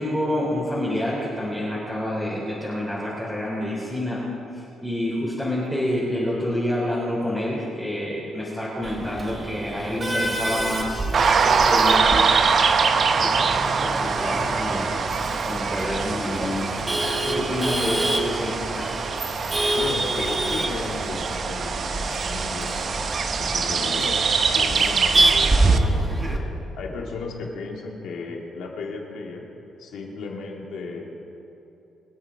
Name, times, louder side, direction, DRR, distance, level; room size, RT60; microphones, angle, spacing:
voice 1, 0.0-4.2 4.5-12.3 12.8-12.9 13.2-18.9, left 1 dB, 5° right, -7 dB, 3.9 m, -28 dB
Male speech man speaking / Laughter / Chatter, 8.8-26.4, right 2 dB, 25° right, 1.7 m, -27 dB
sound 1, 11.1-25.8, right 5 dB, 50° right, 0.8 m, -24 dB
voice 2, 19.7-23.1 23.4-26.5 26.8-29.4 29.8-31.1, left 3 dB, 80° left, 0 dB, 2.6 m, -34 dB
24.5 x 8.7 x 4.9 m, 2.9 s
cardioid pair, 90°, 0 cm